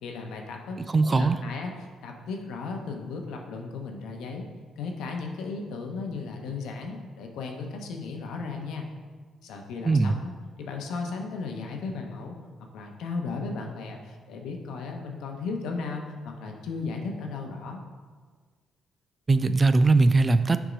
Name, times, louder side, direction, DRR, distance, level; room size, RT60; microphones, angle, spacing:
voice 1, 0.0-4.5 4.8-8.9 9.4-10.3 10.6-12.4 12.7-17.8, left 4 dB, 85° left, 2 dB, 0.9 m, -35 dB
voice 2, 0.8-1.4 9.8-10.2 19.3-20.6, right 3 dB, 30° right, 12 dB, 0.3 m, -20 dB
6.9 x 3.7 x 5.1 m, 1.5 s
cardioid pair, 90°, 0 cm